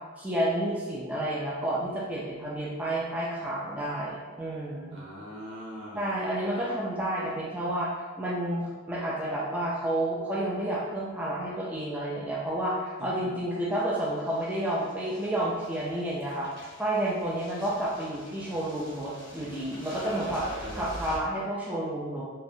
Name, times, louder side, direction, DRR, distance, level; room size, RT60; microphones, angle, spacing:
voice 1, 0.2-5.0 5.9-20.4 20.7-22.2, right 1 dB, 5° right, -7 dB, 0.3 m, -30 dB
voice 2, 4.9-6.1 13.0-13.3 20.0-20.9, equal, 70° right, -6 dB, 0.8 m, -41 dB
sound 1, 13.7-21.2, equal, 25° left, 0.8 m, -47 dB
2.7 x 2.0 x 2.6 m, 1.3 s
head